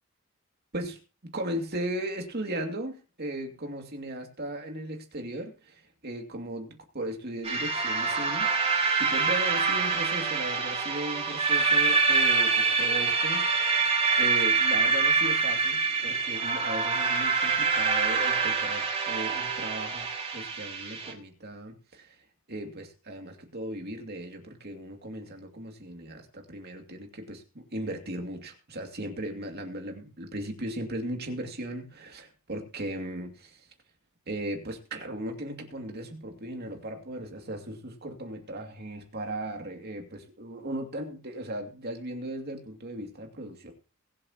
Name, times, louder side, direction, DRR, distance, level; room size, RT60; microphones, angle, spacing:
voice 1, 0.7-13.7 14.2-20.1 20.3-22.2 22.5-33.7 34.3-43.7, right 1 dB, 50° right, 3 dB, 2.5 m, -37 dB
sound 1, 7.4-21.1, right 4 dB, 30° right, 2.8 m, -26 dB
22.0 x 7.8 x 2.9 m, 0.32 s
head